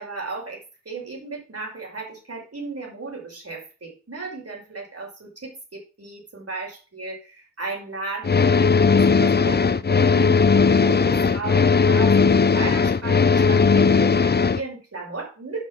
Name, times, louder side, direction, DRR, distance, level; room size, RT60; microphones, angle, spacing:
voice 1, 0.0-8.6 8.9-10.4 10.8-15.7, right 3 dB, 40° right, -1 dB, 5.6 m, -35 dB
sound 1, 8.2-14.6, left 5 dB, 25° left, 0.6 m, -17 dB
8.5 x 6.0 x 6.1 m, 0.35 s
cardioid pair, 50°, 37 cm